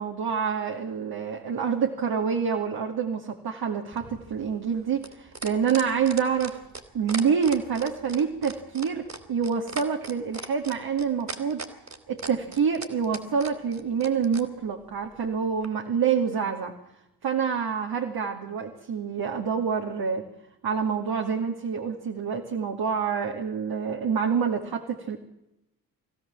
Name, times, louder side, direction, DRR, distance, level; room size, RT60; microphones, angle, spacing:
voice 1, 0.0-6.6 6.9-11.6 12.1-16.7 17.2-20.2 20.6-25.2, right 6 dB, 55° right, 2 dB, 2.7 m, -27 dB
sound 1, 3.9-14.5 15.6-15.7, right 3 dB, 35° right, 3.5 m, -37 dB
23.5 x 16.0 x 7.5 m, 0.89 s
hypercardioid pair, 40°, 44 cm